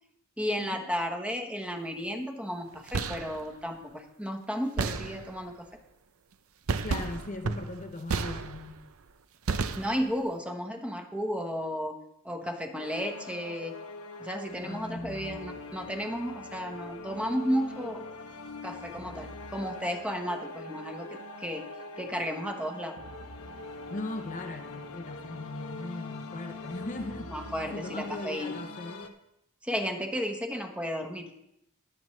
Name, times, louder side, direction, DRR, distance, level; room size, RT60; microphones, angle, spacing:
voice 1, 0.4-5.7 9.8-12.0 12.2-13.7 14.2-18.1 18.6-21.7 22.0-23.0 27.3-28.6 29.6-31.3, equal, 5° right, 4 dB, 1.1 m, -33 dB
sound 1, 2.7-3.4 4.8-5.5 6.7-8.8 9.5-10.2, right 4 dB, 70° right, 0.7 m, -32 dB
voice 2, 6.8-8.8 14.6-15.5 23.9-29.1, left 2 dB, 35° left, 6 dB, 0.8 m, -39 dB
sound 2, 12.8-29.1, left 3 dB, 85° left, 1.2 m, -43 dB
21.0 x 7.7 x 3.2 m, 0.81 s
head